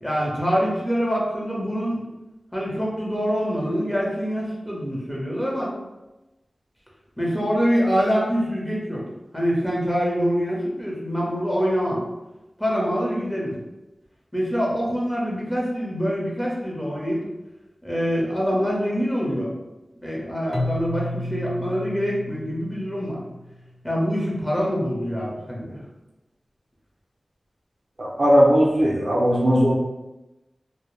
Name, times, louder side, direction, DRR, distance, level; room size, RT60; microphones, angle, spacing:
voice 1, 0.0-2.0 2.5-5.7 7.2-9.0 9.3-12.0 12.6-13.6 14.3-17.2 17.8-19.5 20.0-23.2 23.8-25.8, equal, 10° left, -4 dB, 0.8 m, -25 dB
Keyboard (musical), 20.5-23.5, left 1 dB, 30° left, 0.4 m, -32 dB
voice 2, 28.0-29.8, equal, 60° right, -3 dB, 0.5 m, -18 dB
2.1 x 2.1 x 3.1 m, 1.0 s
wide cardioid pair, 50°, 0 cm